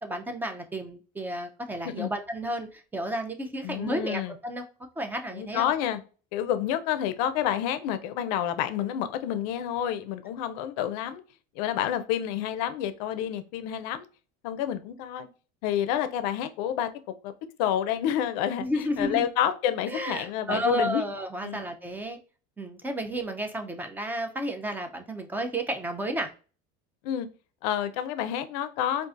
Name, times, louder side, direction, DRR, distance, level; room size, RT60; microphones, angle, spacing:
voice 1, 0.0-4.6 5.0-5.7 18.6-19.3 19.9-22.2 22.6-26.3, equal, 10° right, 5 dB, 0.4 m, -32 dB
voice 2, 3.6-4.3 5.3-6.0 6.3-11.2 11.6-14.1 14.4-15.3 15.6-16.9 17.2-17.3 17.6-21.0 21.4-21.6 27.0-27.3 27.6-29.1, left 10 dB, 80° left, 12 dB, 0.5 m, -29 dB
3.8 x 2.4 x 2.4 m, 0.36 s
cardioid pair, 135°, 20 cm